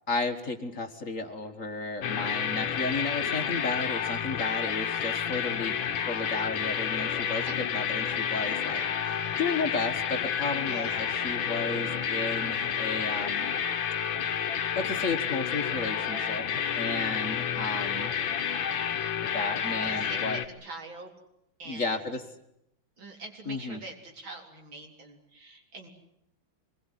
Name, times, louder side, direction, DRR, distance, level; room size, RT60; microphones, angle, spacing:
voice 1, 0.1-5.8 6.1-7.5 7.7-8.8 9.1-13.5 14.8-18.1 19.2-20.4 21.7-22.2 23.5-23.8, left 3 dB, 40° left, 6 dB, 1.9 m, -33 dB
sound 1, 2.0-20.5, left 8 dB, 75° left, 2.1 m, -30 dB
voice 2, 8.6-9.4 10.6-11.1 19.6-21.1 21.6-22.1 23.0-25.9, right 2 dB, 75° right, 2 dB, 4.7 m, -44 dB
25.5 x 20.5 x 9.9 m, 0.79 s
omnidirectional pair, 2.2 m